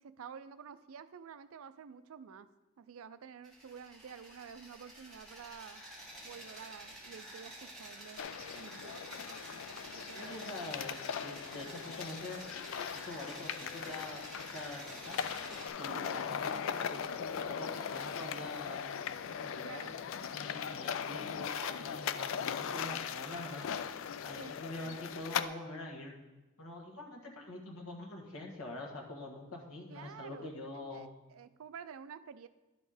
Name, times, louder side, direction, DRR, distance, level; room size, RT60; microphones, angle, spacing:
voice 1, 0.0-2.5 2.8-5.8 6.2-8.2 8.5-9.0 9.9-10.4 15.8-16.1 19.6-20.0 24.3-24.5 29.9-30.5 30.9-32.5, right 7 dB, 80° right, 14 dB, 0.4 m, -50 dB
sound 1, 3.4-15.7, right 1 dB, ahead, 1.5 m, -50 dB
sound 2, 8.2-25.4, left 7 dB, 70° left, 0.3 m, -39 dB
voice 2, 10.1-12.4 12.9-15.2 15.7-18.8 19.3-19.9 20.3-23.8 24.2-26.1 26.6-31.1, left 2 dB, 85° left, 0 dB, 1.5 m, -45 dB
11.0 x 4.2 x 4.9 m, 1.1 s
head